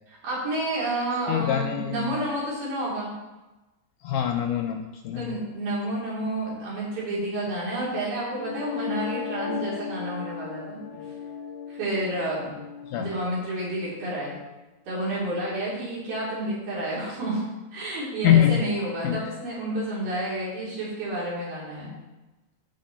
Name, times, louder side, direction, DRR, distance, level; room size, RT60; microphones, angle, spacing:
voice 1, 0.2-3.1 5.2-11.0 11.7-12.5 13.0-14.4 14.9-17.4 17.7-21.9, right 1 dB, 85° right, -7 dB, 5.5 m, -30 dB
voice 2, 1.3-2.3 4.0-5.4 12.9-13.1 18.2-18.7 19.0-19.3, left 10 dB, 80° left, 4 dB, 1.8 m, -24 dB
sound 1, 8.4-14.4, left 7 dB, 65° left, 1.8 m, -36 dB
14.5 x 5.2 x 4.3 m, 1.1 s
omnidirectional pair, 4.1 m